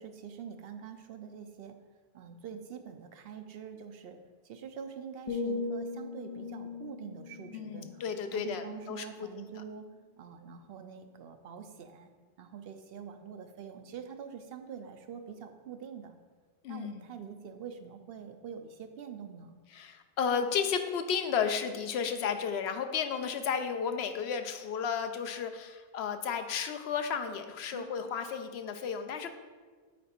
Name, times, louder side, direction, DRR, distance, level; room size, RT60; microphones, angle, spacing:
voice 1, 0.0-1.7 2.1-4.2 4.4-8.0 8.3-9.9 10.2-12.1 12.4-16.2 16.7-19.6 27.7-28.1, right 7 dB, 70° right, 7 dB, 0.8 m, -45 dB
sound 1, 5.3-9.2 9.6-9.9, left 4 dB, 45° left, 0.4 m, -39 dB
voice 2, 7.5-9.5 16.6-17.0 19.7-29.3, left 6 dB, 80° left, 8 dB, 0.8 m, -33 dB
8.4 x 4.0 x 4.4 m, 1.5 s
omnidirectional pair, 1.1 m